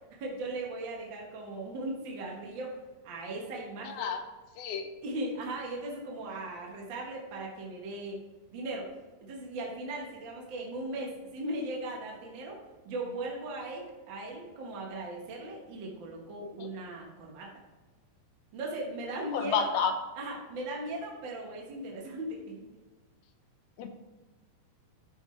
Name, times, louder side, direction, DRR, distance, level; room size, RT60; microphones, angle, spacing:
voice 1, 0.2-4.1 5.0-8.2 8.5-8.9 9.2-12.6 12.8-17.5 18.5-19.7 20.2-22.6, right 2 dB, 55° right, -1 dB, 1.3 m, -38 dB
voice 2, 3.9-4.2 4.6-4.9 16.6-16.7 19.3-20.0 23.8-23.9, left 6 dB, 90° left, 7 dB, 2.8 m, -30 dB
12.0 x 6.4 x 3.3 m, 1.3 s
omnidirectional pair, 4.2 m